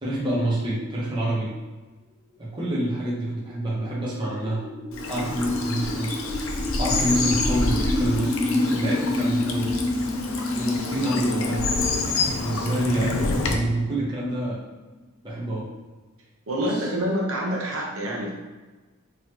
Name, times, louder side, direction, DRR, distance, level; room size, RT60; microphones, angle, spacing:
voice 1, 0.0-1.5 2.4-4.6 5.1-6.2 6.7-9.8 10.5-11.8 12.4-14.6 15.2-15.7 16.6-16.8, right 1 dB, 20° right, -7 dB, 0.9 m, -27 dB
sound 1, 3.2-14.9, left 1 dB, 20° left, 0.5 m, -30 dB
Bird vocalization bird call bird song / Stream, 4.9-13.5, left 3 dB, 75° left, 0.5 m, -28 dB
voice 2, 16.5-18.3, equal, 80° right, -3 dB, 0.9 m, -27 dB
4.0 x 3.1 x 2.9 m, 1.3 s
head